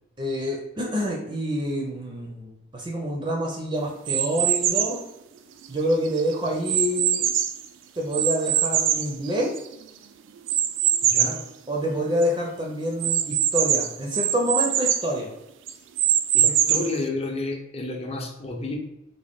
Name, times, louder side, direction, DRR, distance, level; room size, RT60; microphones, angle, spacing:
voice 1, 0.2-5.0 5.7-7.3 8.0-9.5 11.7-15.3 16.4-16.8, equal, 25° right, -1 dB, 0.4 m, -27 dB
sound 1, 4.1-5.0 5.6-7.7 8.1-9.8 10.5-11.4 11.9-12.0 12.2-12.3 13.0-15.1 15.7-17.0, right 9 dB, 85° right, 0.3 m, -23 dB
voice 2, 11.0-11.4 16.3-18.8, left 2 dB, 30° left, 2 dB, 0.5 m, -30 dB
3.6 x 2.1 x 3.5 m, 0.89 s
head